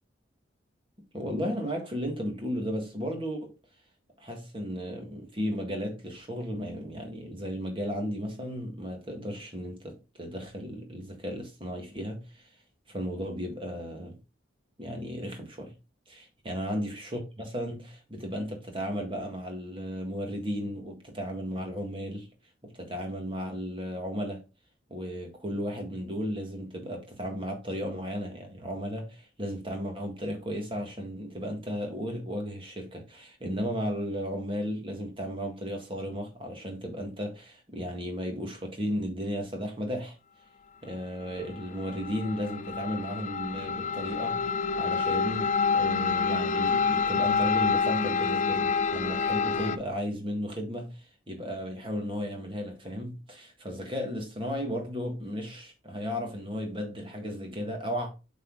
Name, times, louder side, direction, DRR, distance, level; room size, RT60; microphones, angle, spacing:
voice 1, 1.1-3.5 4.2-12.5 12.9-14.2 14.8-15.7 16.1-22.3 22.6-24.4 24.9-40.2 40.8-44.4 44.8-58.1, equal, 25° right, 1.8 m, -34 dB
sound 1, 41.2-49.8, left 5 dB, 40° left, 0.4 m, -28 dB
7.8 x 4.2 x 3.8 m
head